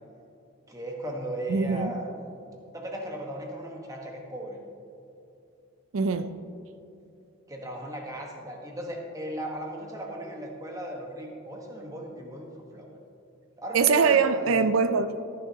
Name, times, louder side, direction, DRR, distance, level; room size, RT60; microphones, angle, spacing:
voice 1, 0.7-2.3 2.7-4.6 7.5-13.0 13.6-14.6, right 1 dB, 15° right, 0 dB, 1.3 m, -37 dB
voice 2, 1.5-1.9 5.9-6.3 13.7-15.2, right 5 dB, 90° right, 10 dB, 0.5 m, -22 dB
14.5 x 9.3 x 2.9 m, 2.7 s
head